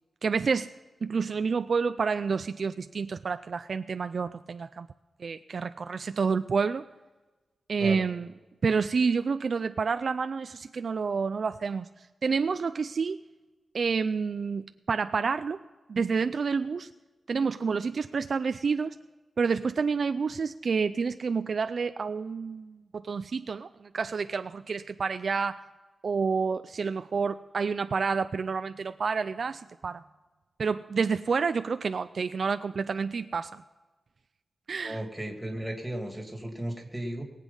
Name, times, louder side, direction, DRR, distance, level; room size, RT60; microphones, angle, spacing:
voice 1, 0.2-0.7 1.0-4.9 5.2-6.8 7.7-8.3 8.6-13.2 13.7-15.6 15.9-16.9 17.3-19.0 19.4-25.6 26.0-30.0 30.6-33.6 34.7-35.0, right 5 dB, 50° right, 10 dB, 0.4 m, -29 dB
voice 2, 34.8-37.2, right 1 dB, 5° right, 2 dB, 2.4 m, -35 dB
21.5 x 8.3 x 5.4 m, 1.2 s
wide cardioid pair, 155°, 0 cm